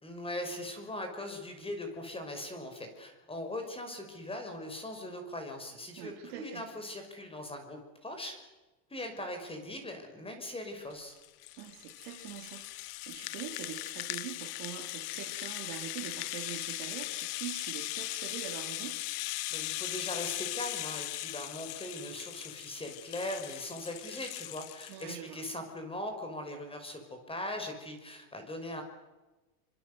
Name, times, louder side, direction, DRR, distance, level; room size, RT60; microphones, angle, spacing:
voice 1, 0.0-8.3 8.9-11.1 19.5-28.8, left 1 dB, 10° left, 5 dB, 5.7 m, -40 dB
voice 2, 6.0-6.7 11.6-19.0 24.9-25.4, right 11 dB, 60° right, 2 dB, 4.1 m, -44 dB
Rattle (instrument), 10.9-25.1, left 19 dB, 75° left, 1.1 m, -39 dB
26.0 x 25.0 x 8.1 m, 1.1 s
supercardioid pair, 130°, 47 cm